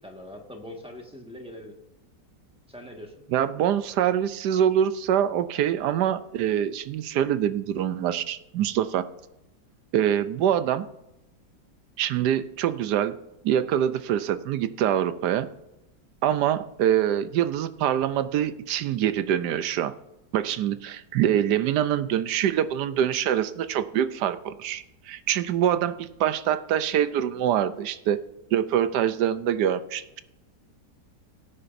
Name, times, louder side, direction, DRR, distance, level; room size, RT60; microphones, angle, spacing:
voice 1, 0.0-1.7 2.7-3.1, left 1 dB, 5° right, 1 dB, 1.4 m, -42 dB
voice 2, 3.3-9.0 9.9-10.9 12.0-13.1 13.4-15.5 16.2-19.9 20.3-28.2 28.5-30.2, right 10 dB, 75° right, 12 dB, 1.2 m, -25 dB
17.0 x 9.8 x 2.6 m, 0.87 s
omnidirectional pair, 1.9 m